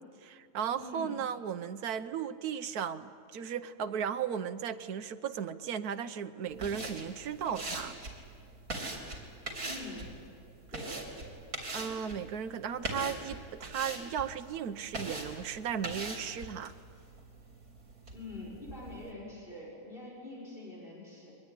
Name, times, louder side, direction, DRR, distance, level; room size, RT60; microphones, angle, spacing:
voice 1, 0.2-7.9 11.7-16.7, right 8 dB, 90° right, 10 dB, 1.4 m, -36 dB
voice 2, 0.8-1.2 9.6-10.1 10.7-11.1 18.1-21.3, left 2 dB, 35° left, -4 dB, 5.8 m, -45 dB
sound 1, 6.5-19.1, right 2 dB, 70° right, 4.0 m, -42 dB
23.5 x 20.0 x 9.9 m, 2.3 s
omnidirectional pair, 1.5 m